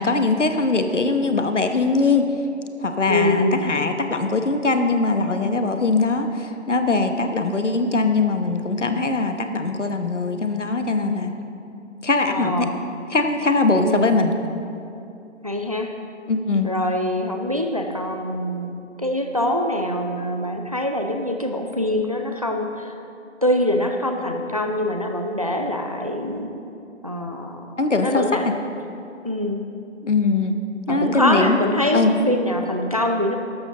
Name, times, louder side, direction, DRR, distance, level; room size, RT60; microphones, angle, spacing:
voice 1, 0.0-2.3 2.8-11.3 12.0-12.7 13.1-14.3 16.3-16.7 27.8-28.5 30.0-30.6 30.9-31.6 31.9-32.1, left 3 dB, 70° left, 7 dB, 1.1 m, -21 dB
voice 2, 3.1-3.6 12.3-12.8 13.7-14.3 15.4-15.9 16.6-23.0 23.4-26.5 27.0-27.7 28.0-28.5 29.2-29.6 30.9-33.4, left 1 dB, 30° right, 4 dB, 0.5 m, -24 dB
13.0 x 12.5 x 2.9 m, 2.7 s
figure-of-eight pair, 150°, 37 cm